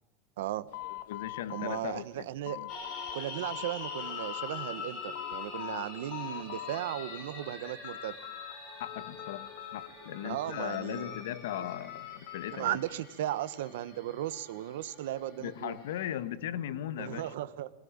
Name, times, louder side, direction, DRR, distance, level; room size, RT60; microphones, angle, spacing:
voice 1, 0.4-0.7 1.5-2.7 3.1-8.1 10.2-11.1 11.6-11.7 12.5-15.8 17.0-17.7, right 13 dB, 75° right, 1.2 m, -36 dB
sound 1, 0.7-3.2 3.4-4.5 4.9-5.8 6.1-7.2 7.5-8.5 8.8-10.1 10.5-12.6, left 14 dB, 65° left, 1.2 m, -43 dB
voice 2, 1.1-2.3 2.5-2.7 8.8-12.8 15.4-17.3, left 11 dB, 90° left, 1.4 m, -38 dB
sound 2, 2.7-16.1, left 4 dB, 30° left, 7.4 m, -45 dB
21.5 x 19.5 x 8.8 m
supercardioid pair, 175°, 0 cm